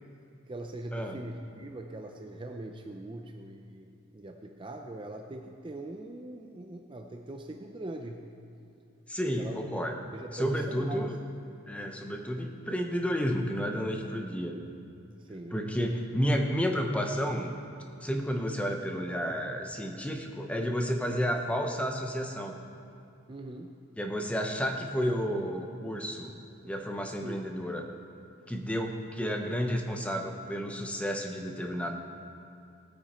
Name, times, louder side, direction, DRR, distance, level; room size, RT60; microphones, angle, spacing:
voice 1, 0.5-8.2 9.4-9.6 10.1-11.1 14.5-14.7 15.2-15.6 21.1-21.4 23.3-23.7 27.2-27.4, right 1 dB, 25° right, 3 dB, 0.5 m, -41 dB
voice 2, 9.1-9.9 10.3-11.2 11.7-14.6 15.5-17.5 18.0-22.6 24.0-26.3 26.6-27.8 28.5-32.0, equal, 5° left, 3 dB, 0.8 m, -31 dB
16.5 x 9.3 x 4.3 m, 2.6 s
head